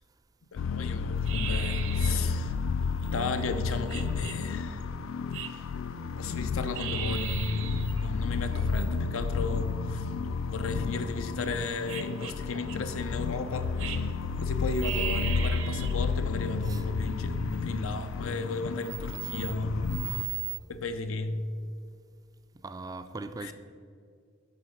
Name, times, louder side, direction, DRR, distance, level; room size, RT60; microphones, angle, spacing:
voice 1, 0.5-2.5 3.0-4.8 5.5-5.6 6.2-10.1 10.4-14.0 14.4-19.9 20.1-20.3 20.7-21.4 23.4-23.5, left 3 dB, 85° left, 0.7 m, -34 dB
sound 1, 0.6-20.2, left 5 dB, 65° left, 0.3 m, -31 dB
sound 2, 1.2-20.6, right 10 dB, 65° right, 0.7 m, -40 dB
voice 2, 22.5-23.5, right 3 dB, 20° right, 0.3 m, -40 dB
11.0 x 3.8 x 7.1 m
head